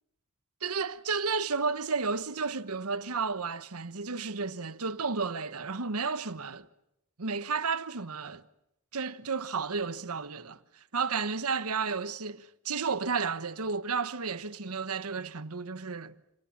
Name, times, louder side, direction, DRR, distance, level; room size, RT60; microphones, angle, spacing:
voice 1, 0.6-6.7 7.2-8.4 8.9-16.1, right 5 dB, 85° right, 1.2 m, -32 dB
29.5 x 27.0 x 7.3 m
head